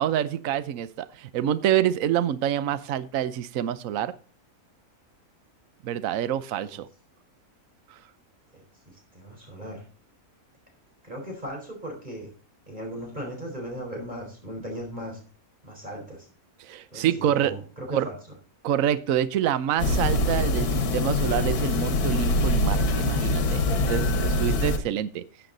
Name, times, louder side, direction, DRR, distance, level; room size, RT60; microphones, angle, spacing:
voice 1, 0.0-4.1 5.8-6.9 7.9-8.0 16.6-17.6 17.9-18.1 18.6-25.2, right 10 dB, 65° right, 14 dB, 1.1 m, -27 dB
voice 2, 8.5-9.8 11.0-12.3 12.7-15.2 15.6-16.3 16.9-18.1, equal, 30° right, 0 dB, 4.4 m, -37 dB
sound 1, 19.8-24.8, left 2 dB, 90° left, 1.7 m, -24 dB
14.0 x 8.1 x 3.9 m, 0.38 s
omnidirectional pair, 1.6 m